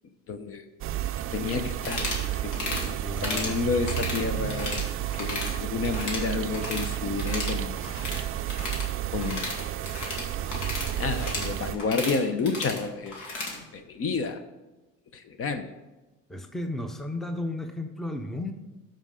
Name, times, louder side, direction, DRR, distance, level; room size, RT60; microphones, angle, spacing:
voice 1, 0.3-0.6 1.3-7.7 9.1-9.7 10.5-13.2 13.5-14.4 15.1-15.7, left 4 dB, 45° left, 9 dB, 0.7 m, -31 dB
sound 1, 0.8-11.8, right 12 dB, 45° right, 0.4 m, -31 dB
sound 2, 1.8-2.2 2.5-2.9 3.2-3.5 3.8-4.9 5.1-5.5 5.8-6.9 7.2-13.6, left 2 dB, 75° left, 2.3 m, -34 dB
voice 2, 3.0-3.6 16.3-18.5, left 1 dB, ahead, 6 dB, 0.6 m, -33 dB
13.0 x 5.3 x 3.7 m, 1.1 s
cardioid pair, 125°, 31 cm